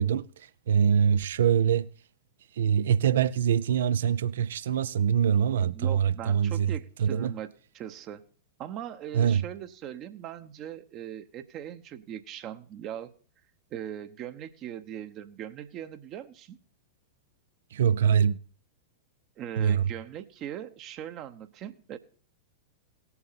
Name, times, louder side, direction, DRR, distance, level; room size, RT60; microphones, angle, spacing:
voice 1, 0.0-1.9 2.6-7.3 9.1-9.4 17.7-18.4 19.6-19.8, right 8 dB, 60° right, 0.5 m, -24 dB
voice 2, 5.7-8.2 8.6-13.1 13.7-16.6 19.4-22.0, right 10 dB, 35° right, 0.9 m, -40 dB
18.0 x 7.0 x 4.1 m
figure-of-eight pair, 95°, 0 cm